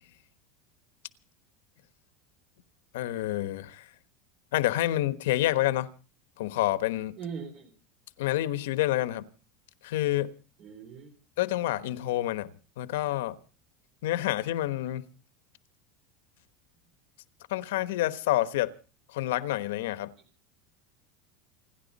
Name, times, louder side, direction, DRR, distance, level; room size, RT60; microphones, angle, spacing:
voice 1, 2.9-3.8 4.5-5.9 6.4-7.1 8.2-9.3 9.8-10.3 11.4-13.4 14.0-15.1 17.5-18.7 19.1-20.1, left 15 dB, 85° left, 1.2 m, -28 dB
voice 2, 7.2-7.7 10.6-11.1, right 6 dB, 30° right, 3.4 m, -40 dB
29.0 x 11.0 x 4.1 m
supercardioid pair, 175°, 0 cm